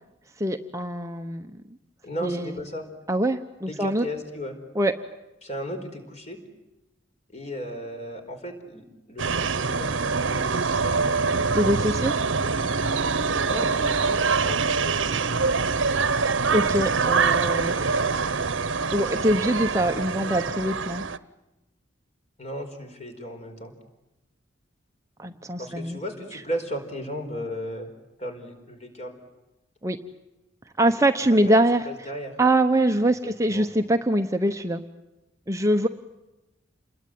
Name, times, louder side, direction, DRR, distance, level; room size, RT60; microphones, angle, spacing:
voice 1, 0.4-1.5 2.2-2.5 3.1-4.0 4.8-4.9 11.5-12.1 16.5-18.0 18.9-21.0 25.2-26.0 29.8-30.0 30.8-31.8 32.4-34.8 35.5-35.9, right 1 dB, 15° right, 6 dB, 0.9 m, -23 dB
voice 2, 2.0-2.9 3.6-4.6 5.4-6.4 7.3-11.4 13.4-15.4 22.4-23.7 25.6-27.9 28.2-29.2 31.3-32.4 33.0-33.7, equal, 35° left, 5 dB, 4.7 m, -36 dB
sound 1, 9.2-21.2, right 4 dB, 85° right, 1.1 m, -24 dB
28.5 x 21.5 x 9.3 m, 1.0 s
head